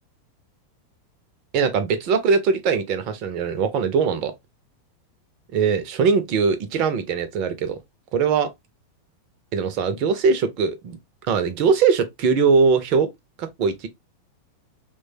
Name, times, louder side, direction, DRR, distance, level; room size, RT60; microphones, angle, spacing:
voice 1, 1.5-4.3 5.5-7.8 8.1-8.5 9.5-11.0 11.3-13.1 13.4-13.9, right 5 dB, 40° right, 0.5 m, -21 dB
3.1 x 2.2 x 2.5 m
figure-of-eight pair, 90°, 0 cm